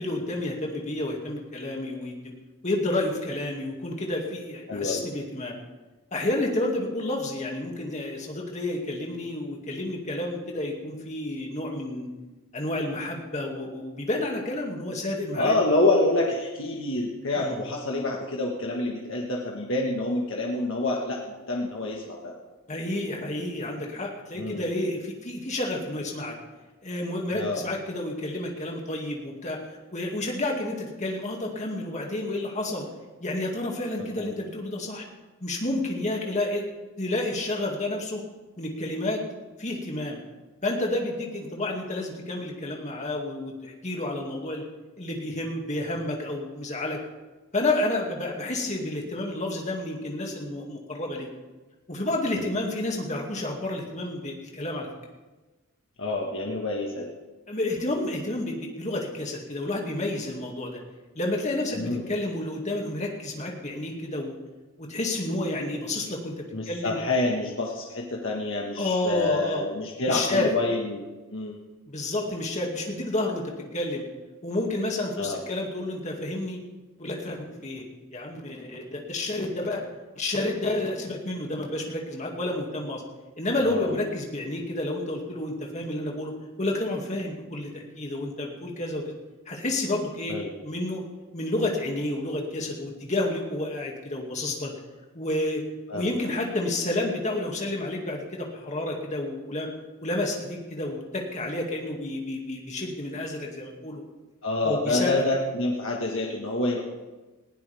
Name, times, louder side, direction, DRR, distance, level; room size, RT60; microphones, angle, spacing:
voice 1, 0.0-2.2 2.6-5.5 6.1-12.1 12.5-15.6 17.3-17.6 22.7-26.4 26.8-29.6 29.9-32.9 33.2-35.1 35.4-36.7 37.0-38.2 38.6-39.2 39.6-40.2 40.6-44.6 45.0-47.0 47.5-51.3 51.9-54.9 57.5-60.8 61.1-64.3 64.8-66.3 66.7-67.0 68.8-69.6 70.1-70.5 71.9-73.4 73.7-74.0 74.4-76.6 77.0-79.8 80.2-83.0 83.4-86.3 86.6-89.1 89.5-90.4 90.6-91.0 91.3-94.7 95.1-95.6 95.9-99.7 100.0-104.0 104.6-105.2, left 2 dB, 30° left, 0 dB, 2.3 m, -30 dB
voice 2, 4.7-5.1 15.4-22.3 24.3-24.6 27.3-27.6 34.2-34.3 36.2-36.3 52.4-52.5 56.0-57.1 61.7-62.1 66.5-71.0 71.3-71.6 75.2-75.4 83.6-83.9 90.3-90.5 95.9-96.1 104.4-106.8, left 2 dB, 60° left, -1 dB, 1.6 m, -27 dB
20.0 x 16.0 x 3.5 m, 1.2 s
head